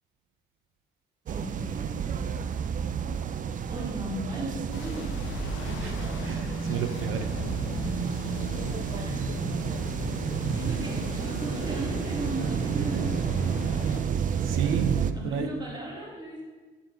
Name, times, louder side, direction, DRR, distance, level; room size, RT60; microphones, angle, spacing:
voice 1, 1.3-2.2 3.7-5.1 8.9-9.4 10.5-13.1 14.3-14.8 15.1-16.4, right 1 dB, 20° right, -4 dB, 2.0 m, -37 dB
sound 1, 1.3-15.1, right 7 dB, 40° right, 0.4 m, -30 dB
sound 2, 4.7-14.0, left 3 dB, 80° left, 0.8 m, -37 dB
voice 2, 5.6-7.3 14.3-15.5, right 7 dB, 85° right, 8 dB, 0.6 m, -33 dB
8.9 x 4.2 x 3.8 m, 1.4 s
cardioid pair, 90°, 20 cm